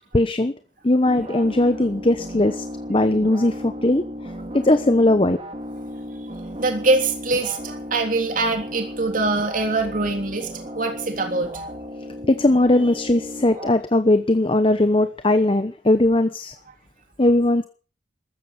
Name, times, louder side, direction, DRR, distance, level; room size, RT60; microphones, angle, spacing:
voice 1, 0.1-0.5 0.8-4.0 4.5-5.4 12.3-16.5 17.2-17.6, left 1 dB, 30° left, 11 dB, 0.9 m, -19 dB
sound 1, 1.1-13.7, left 1 dB, 30° right, 2.6 m, -35 dB
voice 2, 6.6-11.7, right 3 dB, 45° right, 4 dB, 3.4 m, -23 dB
15.0 x 13.5 x 6.9 m, 0.38 s
head